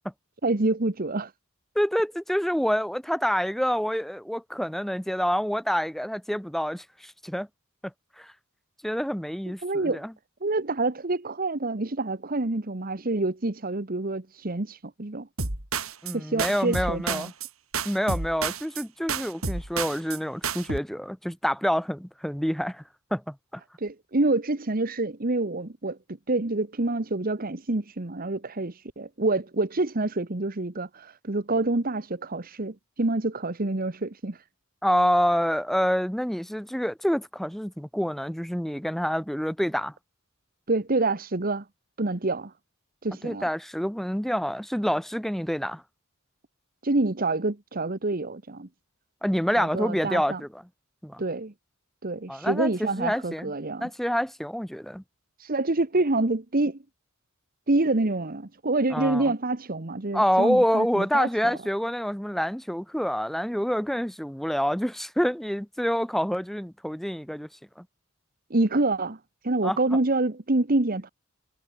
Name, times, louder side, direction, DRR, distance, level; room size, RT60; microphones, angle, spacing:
voice 1, 0.4-1.3 9.6-10.0 10.4-15.3 16.1-17.3 23.8-34.4 40.7-41.7 42.0-42.5 43.0-43.5 46.8-48.7 49.6-50.4 51.2-51.5 52.0-53.9 55.4-56.8 57.7-61.6 68.5-69.2 69.4-71.1, right 2 dB, 45° right, 1.3 m, -27 dB
voice 2, 1.7-7.5 8.2-8.3 8.8-10.1 16.0-17.3 17.8-22.8 23.1-23.6 34.8-39.9 43.2-45.8 49.2-50.6 51.0-51.2 52.3-53.5 53.8-55.0 58.9-59.3 60.1-67.5 67.8-67.9 69.6-69.8, equal, ahead, 0.7 m, -27 dB
sound 1, 15.4-16.1 16.4-17.5 17.7-18.8 19.1-20.2 20.4-20.8, right 5 dB, 90° right, 4.2 m, -30 dB
head